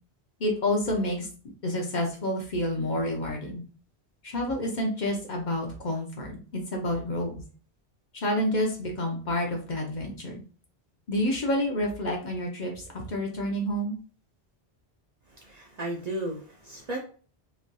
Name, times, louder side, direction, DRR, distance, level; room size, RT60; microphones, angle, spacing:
voice 1, 0.4-1.3 1.6-3.6 4.2-7.3 8.1-10.4 11.1-14.0, left 1 dB, 50° left, 0 dB, 0.8 m, -29 dB
voice 2, 15.4-17.0, right 1 dB, 50° right, -1 dB, 0.5 m, -34 dB
3.2 x 2.5 x 2.2 m, 0.39 s
omnidirectional pair, 1.1 m